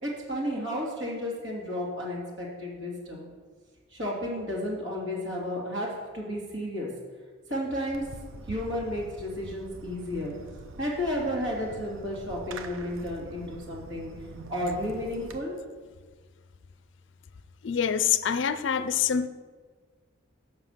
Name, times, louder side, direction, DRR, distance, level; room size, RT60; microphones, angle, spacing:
voice 1, 0.0-3.3 3.9-6.9 7.5-10.4 10.8-14.1 14.5-15.6, left 1 dB, 60° right, -4 dB, 2.6 m, -32 dB
Fireworks, 7.9-15.4, right 2 dB, 80° right, 0.8 m, -44 dB
voice 2, 17.6-19.3, left 8 dB, 60° left, 13 dB, 0.4 m, -25 dB
7.3 x 6.2 x 6.6 m, 1.5 s
head